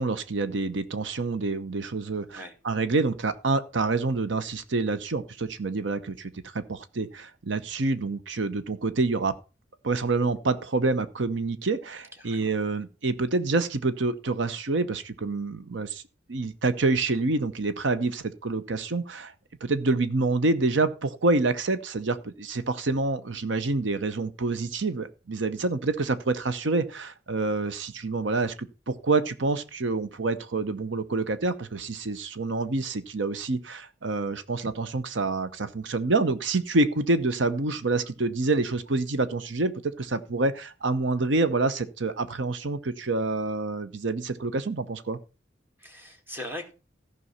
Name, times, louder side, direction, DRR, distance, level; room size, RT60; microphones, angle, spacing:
voice 1, 0.0-9.4 9.8-16.0 16.3-19.3 19.6-45.2, right 3 dB, 75° right, 12 dB, 0.8 m, -27 dB
voice 2, 12.2-12.5 45.8-46.7, left 1 dB, 10° right, 3 dB, 2.0 m, -40 dB
14.5 x 5.5 x 5.5 m, 0.32 s
head